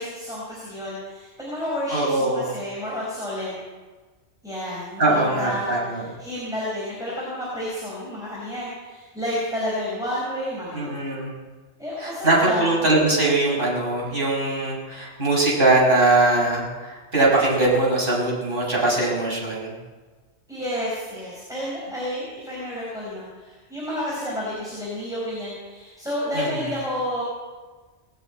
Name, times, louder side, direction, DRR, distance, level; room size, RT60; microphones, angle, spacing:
voice 1, 0.0-3.6 4.4-11.0 11.8-12.7 20.5-27.2, left 1 dB, 5° right, -6 dB, 4.7 m, -30 dB
voice 2, 1.9-2.5 5.0-6.0 10.7-11.4 12.0-19.8 26.3-26.7, right 2 dB, 50° right, -4 dB, 5.7 m, -21 dB
20.0 x 7.8 x 8.8 m, 1.3 s
omnidirectional pair, 1.2 m